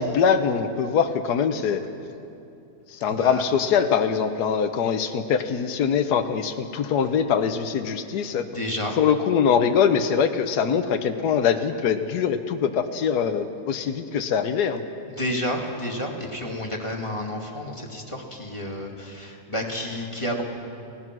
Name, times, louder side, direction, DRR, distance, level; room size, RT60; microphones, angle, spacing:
voice 1, 0.0-1.9 2.9-8.4 9.0-14.8, left 7 dB, 80° left, 7 dB, 1.4 m, -23 dB
voice 2, 3.1-3.4 8.5-9.0 15.1-20.4, left 1 dB, 20° left, 0 dB, 2.4 m, -30 dB
29.0 x 18.0 x 6.2 m, 2.6 s
omnidirectional pair, 1.7 m